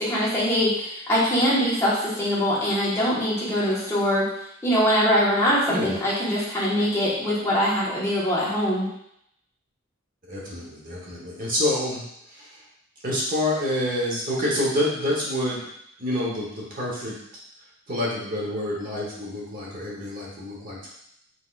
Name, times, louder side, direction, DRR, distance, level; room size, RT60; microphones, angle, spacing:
voice 1, 0.0-4.3 4.6-8.9, equal, 15° left, -8 dB, 1.4 m, -23 dB
voice 2, 5.7-6.0 10.3-12.0 12.3-12.6 13.0-15.6 16.0-17.2 17.9-20.9, left 1 dB, 45° right, -4 dB, 1.2 m, -27 dB
4.6 x 4.2 x 2.5 m, 0.74 s
head